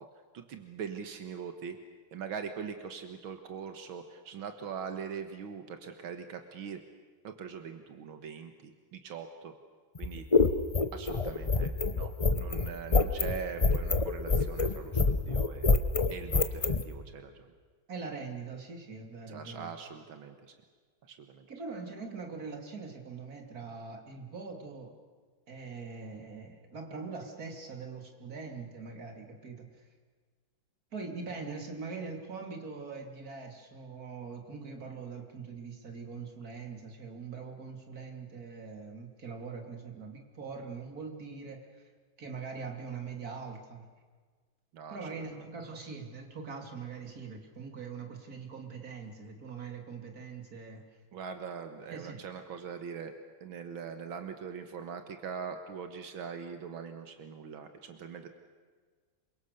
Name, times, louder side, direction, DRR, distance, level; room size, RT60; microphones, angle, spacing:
voice 1, 0.3-1.8 2.1-6.8 7.2-9.5 10.0-10.3 10.9-15.7 16.1-17.5 19.3-20.5 21.1-21.5 44.7-45.2 51.1-53.1 53.4-58.3, right 6 dB, 85° right, 7 dB, 2.2 m, -42 dB
sound 1, 9.9-16.8, left 3 dB, 25° left, 0.7 m, -26 dB
voice 2, 17.9-19.7 21.5-24.9 25.5-29.9 30.9-41.9 42.2-43.8 44.9-50.8 51.9-52.3, right 4 dB, 45° right, 3 dB, 3.3 m, -42 dB
28.0 x 24.0 x 6.7 m, 1.5 s
omnidirectional pair, 2.2 m